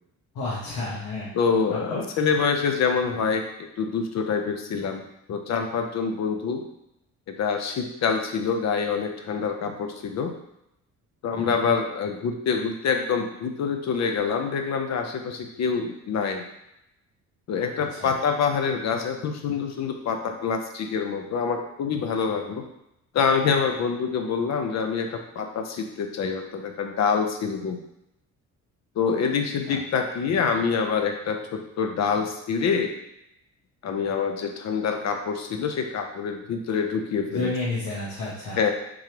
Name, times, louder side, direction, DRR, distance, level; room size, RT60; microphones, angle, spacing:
voice 1, 0.3-1.3 1.7-2.0 11.4-11.5 18.0-18.1 29.7-29.8 37.3-38.6, left 2 dB, 85° left, -7 dB, 1.1 m, -30 dB
voice 2, 1.3-3.4 3.8-6.6 7.3-10.3 11.2-16.5 17.5-22.6 23.1-27.8 29.0-32.9 33.8-37.5 38.6-38.7, left 5 dB, 55° left, 5 dB, 0.6 m, -26 dB
3.8 x 3.1 x 2.9 m, 0.84 s
cardioid pair, 105°, 32 cm